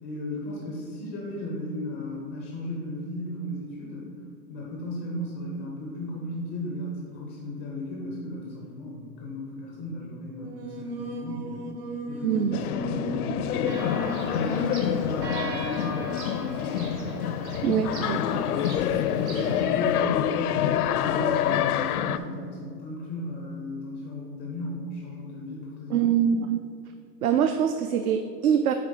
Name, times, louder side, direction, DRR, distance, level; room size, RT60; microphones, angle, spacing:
voice 1, 0.0-4.1 4.5-11.7 12.1-17.0 19.2-26.2, left 1 dB, 10° left, -3 dB, 0.4 m, -36 dB
Singing, 10.3-15.2, right 2 dB, 35° right, 0.9 m, -37 dB
voice 2, 12.2-12.6 17.6-18.2 25.9-26.6 27.2-28.7, right 8 dB, 60° right, 8 dB, 0.5 m, -24 dB
sound 1, 12.5-22.2, left 9 dB, 65° left, 0.5 m, -27 dB
Church bell, 13.7-19.7, right 3 dB, 80° right, 1.5 m, -39 dB
8.5 x 3.3 x 5.6 m, 2.3 s
hypercardioid pair, 140°, 50 cm